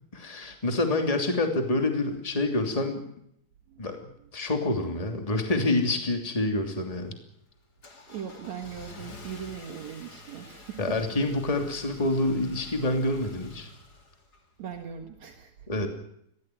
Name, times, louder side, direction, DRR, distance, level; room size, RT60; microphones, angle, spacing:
voice 1, 0.1-3.1 3.8-7.1 10.8-13.7 15.7-15.9, left 2 dB, 10° left, 5 dB, 2.7 m, -27 dB
voice 2, 3.7-4.0 8.1-11.0 14.6-15.7, right 8 dB, 65° right, 3 dB, 2.8 m, -40 dB
Car / Engine starting, 6.6-14.7, left 3 dB, 35° left, 3.2 m, -49 dB
21.5 x 17.0 x 9.4 m, 0.73 s
omnidirectional pair, 3.4 m